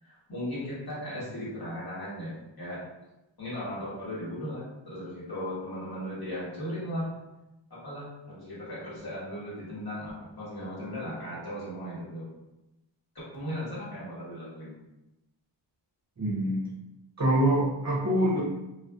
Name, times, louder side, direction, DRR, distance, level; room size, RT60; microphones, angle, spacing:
voice 1, 0.0-2.9 3.4-7.2 7.7-10.1 10.4-12.3 13.3-14.7, equal, 55° left, -9 dB, 1.4 m, -37 dB
voice 2, 16.2-16.6 17.2-18.4, right 1 dB, 35° right, -4 dB, 0.6 m, -25 dB
2.4 x 2.2 x 2.4 m, 0.96 s
wide cardioid pair, 75°, 45 cm